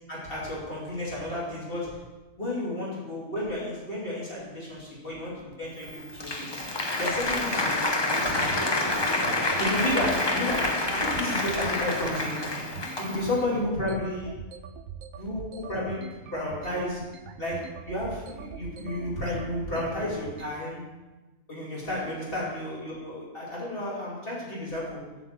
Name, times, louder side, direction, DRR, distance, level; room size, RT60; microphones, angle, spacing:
voice 1, 0.1-2.0 2.4-6.5 7.0-8.7 9.2-12.5 13.0-14.3 15.1-17.1 17.4-20.8 21.5-25.0, left 1 dB, 40° left, -6 dB, 2.9 m, -32 dB
sound 1, 5.4-20.6, right 6 dB, 80° right, 1.1 m, -43 dB
Applause, 5.8-13.4, left 2 dB, 25° left, 0.7 m, -28 dB
8.3 x 6.1 x 7.4 m, 1.1 s
omnidirectional pair, 1.4 m